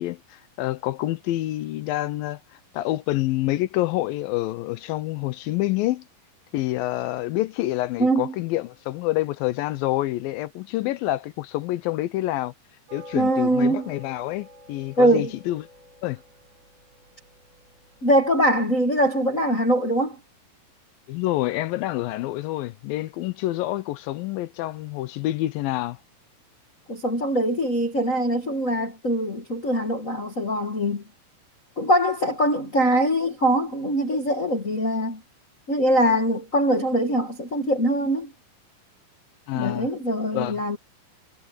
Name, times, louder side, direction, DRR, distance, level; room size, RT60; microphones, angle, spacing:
voice 1, 0.0-2.4 2.7-6.0 6.5-12.5 12.9-15.6 16.0-16.2 21.1-26.0 39.5-39.9 40.3-40.6, left 16 dB, 80° left, 2.3 m, -27 dB
voice 2, 8.0-8.3 13.1-13.9 15.0-15.3 18.0-20.2 26.9-31.0 31.8-35.2 35.7-38.3 39.5-40.8, right 1 dB, 45° left, 1.0 m, -22 dB
sound 1, 12.9-18.4, left 1 dB, 90° right, 6.3 m, -47 dB
omnidirectional pair, 4.4 m